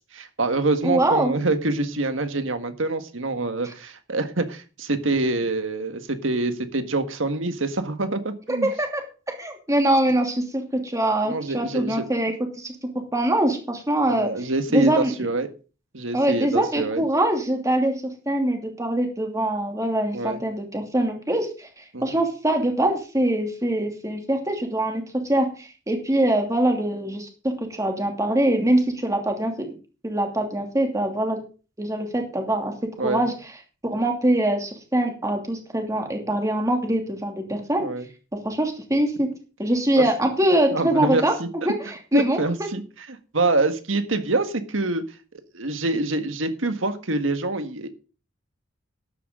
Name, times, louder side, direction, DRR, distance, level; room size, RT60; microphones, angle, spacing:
voice 1, 0.1-8.7 11.2-12.1 14.1-15.5 15.9-17.0 20.1-20.4 21.9-22.2 33.0-33.2 37.8-38.1 40.0-40.1 40.7-41.5 42.1-42.8 43.1-45.0 45.5-47.9, right 2 dB, 80° right, 9 dB, 1.7 m, -25 dB
voice 2, 0.8-1.3 8.5-9.0 9.3-12.7 13.1-14.3 14.7-15.1 16.1-17.9 18.3-29.7 30.0-31.4 31.8-32.7 33.0-33.3 33.8-37.9 38.4-39.3 39.6-41.3 41.6-42.4, right 1 dB, 15° right, 3 dB, 2.8 m, -23 dB
13.0 x 11.0 x 3.8 m, 0.34 s
head